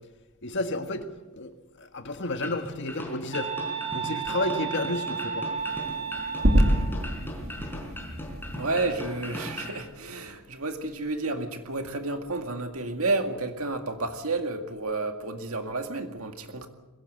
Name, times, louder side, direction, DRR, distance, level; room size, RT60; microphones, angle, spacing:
voice 1, 0.4-1.1 1.3-1.5 1.8-3.5 3.9-5.5, left 2 dB, 55° left, 7 dB, 1.7 m, -31 dB
sound 1, 2.4-9.8, equal, 10° left, 4.2 m, -39 dB
sound 2, 3.3-7.0, right 7 dB, 25° right, 1.4 m, -33 dB
sound 3, 5.6-9.9, equal, 45° right, 2.4 m, -27 dB
voice 2, 8.5-16.7, right 3 dB, 70° right, 6 dB, 2.1 m, -31 dB
21.5 x 16.5 x 7.9 m, 1.1 s
head